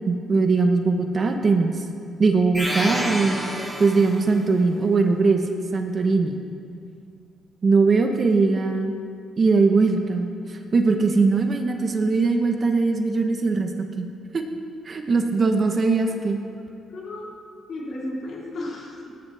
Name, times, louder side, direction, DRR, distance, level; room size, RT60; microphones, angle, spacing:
voice 1, 0.1-1.8 2.2-3.4 3.8-5.4 5.7-6.4 7.6-8.9 9.4-10.3 10.7-13.7 14.0-14.1 14.3-14.4 14.8-16.4, right 4 dB, 40° right, 5 dB, 1.2 m, -20 dB
sound 1, 2.5-4.4, right 1 dB, 5° right, 3.4 m, -29 dB
voice 2, 16.9-17.2 17.7-19.1, left 1 dB, 60° left, -4 dB, 3.9 m, -34 dB
18.5 x 12.0 x 3.6 m, 2.4 s
cardioid pair, 90°, 0 cm